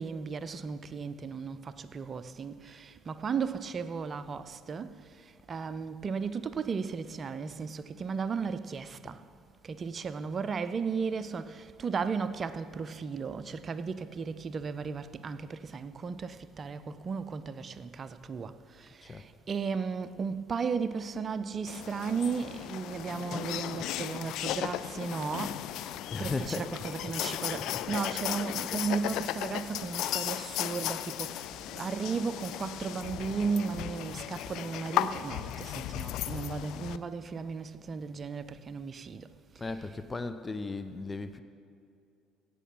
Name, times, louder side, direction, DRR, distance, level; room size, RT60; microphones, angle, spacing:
voice 1, 0.0-5.0 5.2-9.2 9.6-25.9 26.2-39.3 39.6-39.9, right 5 dB, 40° right, 0.6 m, -35 dB
sound 1, 21.7-37.0, left 13 dB, 60° left, 0.3 m, -36 dB
voice 2, 26.1-26.9 27.7-28.0 39.6-41.4, left 3 dB, 25° left, 0.7 m, -37 dB
16.5 x 6.8 x 5.6 m
figure-of-eight pair, 55°, 0 cm